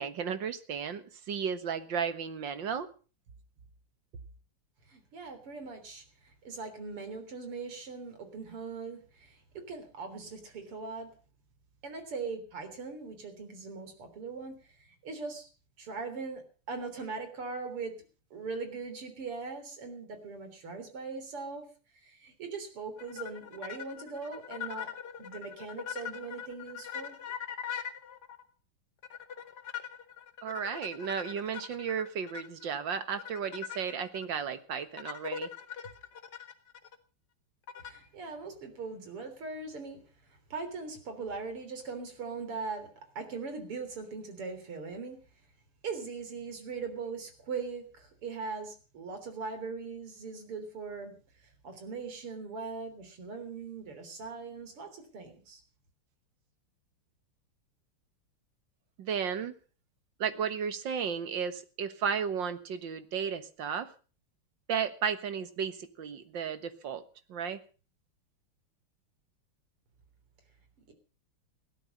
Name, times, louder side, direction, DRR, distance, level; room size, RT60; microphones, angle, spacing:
voice 1, 0.0-2.9 30.4-35.5 59.0-59.5 60.2-63.9 64.7-67.0 67.3-67.6, right 7 dB, 60° right, 11 dB, 2.0 m, -34 dB
voice 2, 4.9-11.1 11.8-14.8 15.0-15.5 15.8-18.0 18.3-21.7 21.9-24.9 25.2-27.1 37.8-40.0 40.5-45.2 45.8-51.1 51.6-55.6 70.9-71.0, right 4 dB, 85° right, 8 dB, 4.4 m, -40 dB
sound 1, 23.0-28.4 29.0-32.7 33.2-34.3 35.0-37.0 37.7-38.1, left 8 dB, 50° left, 2.1 m, -41 dB
17.0 x 12.5 x 5.4 m, 0.37 s
omnidirectional pair, 2.4 m